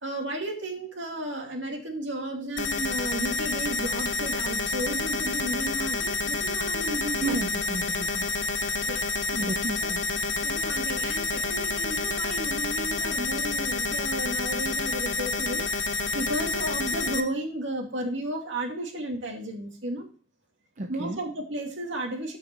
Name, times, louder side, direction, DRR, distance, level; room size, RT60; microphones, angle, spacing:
voice 1, 0.0-7.4 8.9-9.0 9.4-9.5 9.8-10.0 10.4-20.1 20.9-22.4, right 1 dB, 70° right, 2 dB, 2.5 m, -33 dB
sound 1, 2.6-17.2, left 3 dB, 75° left, 1.1 m, -29 dB
voice 2, 7.2-8.3 9.3-10.0 20.8-21.2, right 2 dB, 40° right, 4 dB, 0.7 m, -32 dB
13.0 x 5.7 x 4.5 m, 0.40 s
head